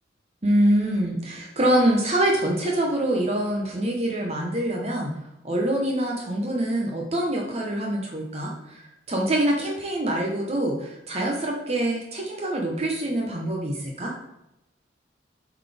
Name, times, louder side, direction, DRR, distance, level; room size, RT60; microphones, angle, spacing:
voice 1, 0.4-5.1 5.4-14.1, right 1 dB, 35° right, -1 dB, 0.9 m, -25 dB
7.2 x 4.0 x 3.5 m, 0.88 s
head